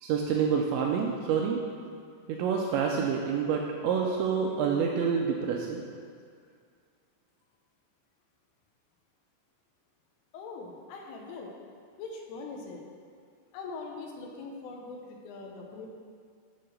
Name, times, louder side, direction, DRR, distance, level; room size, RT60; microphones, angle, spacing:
voice 1, 0.0-1.6 2.3-5.8, right 6 dB, 85° right, 0 dB, 2.6 m, -28 dB
voice 2, 10.3-11.5 12.0-12.8 13.5-15.9, left 4 dB, 80° left, 1 dB, 3.5 m, -41 dB
9.5 x 4.6 x 6.4 m, 2.1 s
omnidirectional pair, 5.7 m